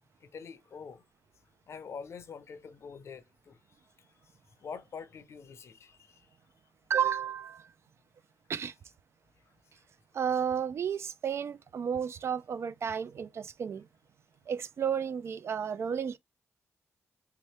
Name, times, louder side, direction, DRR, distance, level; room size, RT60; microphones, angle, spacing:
voice 1, 0.2-1.0 1.7-6.3 9.4-9.8, left 6 dB, 60° left, 0.6 m, -46 dB
voice 2, 6.9-7.7 8.5-8.7 10.1-13.9 14.5-16.2, right 7 dB, 55° right, 0.3 m, -32 dB
3.5 x 2.9 x 3.2 m
cardioid pair, 85°, 5 cm